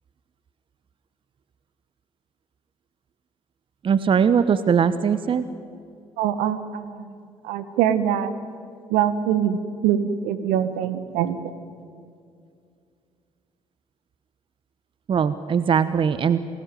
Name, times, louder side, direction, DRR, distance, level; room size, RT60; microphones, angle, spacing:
voice 1, 3.8-5.5 15.1-16.4, right 7 dB, 40° right, 14 dB, 1.0 m, -20 dB
voice 2, 6.2-7.2 7.4-8.3 8.9-11.4, right 9 dB, 65° right, 13 dB, 1.6 m, -23 dB
29.5 x 20.5 x 9.2 m, 2.4 s
figure-of-eight pair, 50°, 14 cm